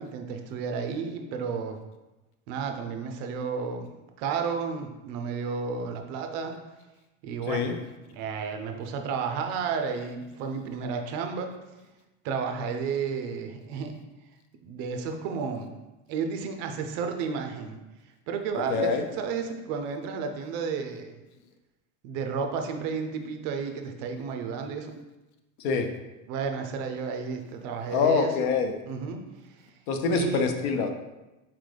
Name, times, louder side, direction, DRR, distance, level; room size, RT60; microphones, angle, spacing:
voice 1, 0.0-1.8 2.5-3.9 4.2-6.5 7.2-7.7 8.1-11.5 12.2-14.0 14.6-15.7 16.1-17.8 18.3-21.2 22.0-24.9 26.3-28.3 28.9-29.2 29.5-29.6 30.1-30.5, right 5 dB, 50° right, 5 dB, 0.5 m, -32 dB
voice 2, 18.7-19.0 25.6-25.9 27.9-28.7 29.9-30.9, left 5 dB, 60° left, 6 dB, 0.6 m, -25 dB
4.3 x 3.8 x 3.3 m, 1.0 s
cardioid pair, 170°, 34 cm